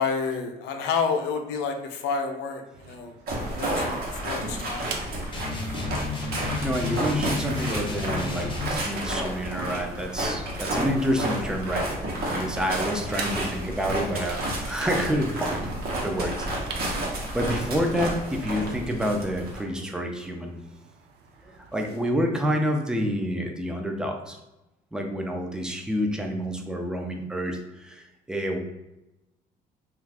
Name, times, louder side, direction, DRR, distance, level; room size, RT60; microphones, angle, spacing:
voice 1, 0.0-3.1 3.4-4.9, left 5 dB, 90° left, 5 dB, 0.5 m, -29 dB
sound 1, 2.7-22.3, right 5 dB, 80° right, 0.5 m, -47 dB
sound 2, 3.3-19.6, right 1 dB, 65° right, 0.9 m, -31 dB
sound 3, 5.3-8.8, left 3 dB, 30° left, 0.7 m, -32 dB
voice 2, 6.2-16.9 17.3-20.6 21.4-24.4 24.9-28.6, equal, 5° right, 2 dB, 0.4 m, -28 dB
2.5 x 2.4 x 3.3 m, 0.96 s
cardioid pair, 110°, 17 cm